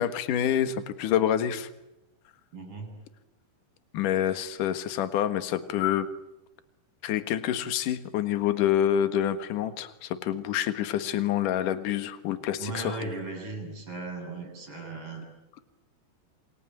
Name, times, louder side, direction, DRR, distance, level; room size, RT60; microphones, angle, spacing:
voice 1, 0.0-1.7 3.9-6.1 7.0-13.0, left 10 dB, 60° left, 11 dB, 2.8 m, -27 dB
voice 2, 2.5-3.0 12.6-15.2, right 3 dB, 35° right, 4 dB, 8.4 m, -37 dB
28.5 x 22.0 x 9.1 m, 0.92 s
omnidirectional pair, 4.6 m